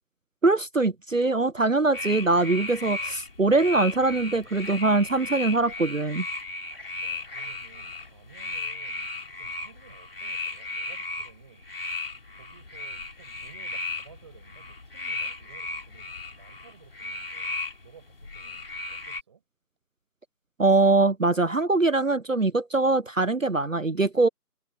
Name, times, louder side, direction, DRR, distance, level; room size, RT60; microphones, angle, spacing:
voice 1, 0.4-6.3 20.6-24.3, right 3 dB, 55° right, 0.7 m, -22 dB
sound 1, 1.9-19.2, left 3 dB, 35° left, 3.4 m, -36 dB
voice 2, 6.6-11.7 12.3-19.4, right 7 dB, 15° right, 7.4 m, -55 dB
figure-of-eight pair, 165°, 48 cm